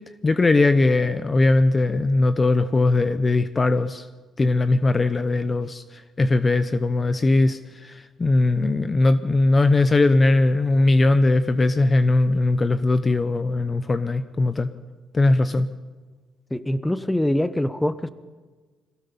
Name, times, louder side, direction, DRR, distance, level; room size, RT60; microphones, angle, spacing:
voice 1, 0.2-4.1 4.4-14.7 15.1-15.7, left 2 dB, 30° left, 12 dB, 0.8 m, -20 dB
voice 2, 16.5-18.1, left 1 dB, 10° left, 13 dB, 1.0 m, -24 dB
22.0 x 16.5 x 7.1 m, 1.4 s
cardioid pair, 90°, 0 cm